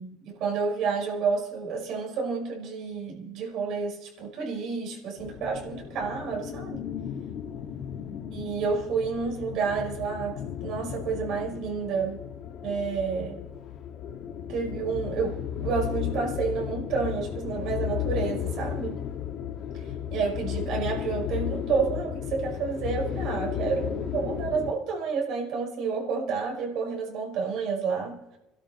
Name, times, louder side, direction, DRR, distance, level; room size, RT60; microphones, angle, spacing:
voice 1, 0.0-6.8 8.3-12.2 12.6-13.4 14.5-19.0 20.1-28.2, right 5 dB, 65° right, -2 dB, 5.1 m, -30 dB
sound 1, 5.2-24.7, left 9 dB, 55° left, 1.8 m, -34 dB
29.5 x 12.5 x 3.1 m, 0.94 s
cardioid pair, 135°, 0 cm